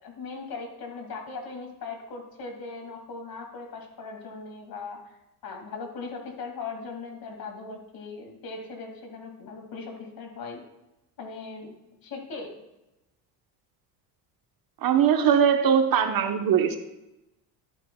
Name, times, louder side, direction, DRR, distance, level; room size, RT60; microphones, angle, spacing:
voice 1, 0.0-5.1 5.4-10.6 11.2-11.7 12.0-12.5, left 4 dB, 50° left, 3 dB, 2.1 m, -39 dB
voice 2, 14.8-16.8, right 8 dB, 50° right, 7 dB, 0.9 m, -21 dB
11.0 x 9.2 x 2.2 m, 0.94 s
supercardioid pair, 85°, 45 cm